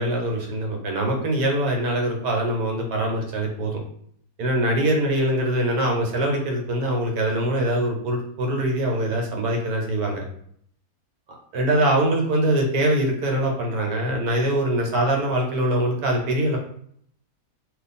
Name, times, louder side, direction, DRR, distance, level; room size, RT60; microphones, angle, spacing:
voice 1, 0.0-3.8 4.4-10.2 11.5-16.6, right 1 dB, 70° right, 1 dB, 1.3 m, -23 dB
2.5 x 2.5 x 4.1 m, 0.65 s
omnidirectional pair, 1.8 m